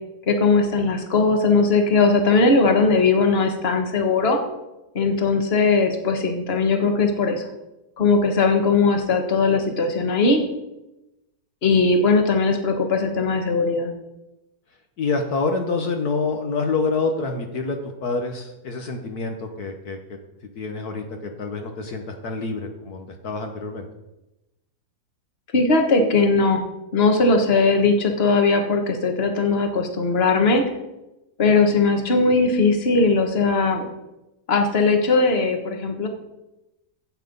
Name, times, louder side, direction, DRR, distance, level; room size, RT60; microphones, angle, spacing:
voice 1, 0.3-4.4 4.9-7.4 8.0-10.4 11.6-13.9 25.5-26.6 26.9-30.6 31.4-33.9 34.5-36.1, left 3 dB, 40° left, 4 dB, 1.6 m, -19 dB
voice 2, 15.0-20.2 20.5-23.9, left 3 dB, 65° left, 4 dB, 1.6 m, -27 dB
13.5 x 8.4 x 5.3 m, 0.96 s
omnidirectional pair, 1.8 m